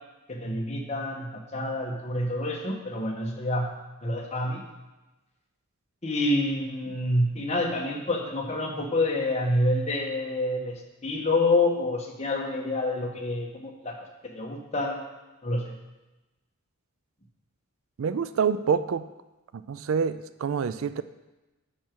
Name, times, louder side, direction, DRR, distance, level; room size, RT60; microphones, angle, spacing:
voice 1, 0.3-3.7 4.0-4.6 6.0-14.0 14.2-15.0 15.4-15.6, left 2 dB, 30° left, 0 dB, 1.3 m, -27 dB
voice 2, 18.0-19.1 19.5-21.0, right 6 dB, 65° right, 13 dB, 0.4 m, -27 dB
10.0 x 6.2 x 4.6 m, 1.1 s
head